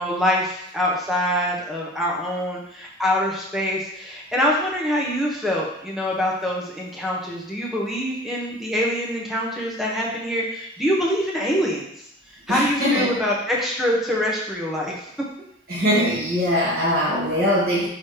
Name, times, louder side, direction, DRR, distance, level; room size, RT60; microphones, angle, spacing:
voice 1, 0.0-11.9 12.5-15.0, equal, ahead, -4 dB, 1.0 m, -24 dB
voice 2, 12.5-13.1 15.7-17.9, equal, 50° right, -8 dB, 1.4 m, -21 dB
6.1 x 3.1 x 4.9 m, 0.75 s
head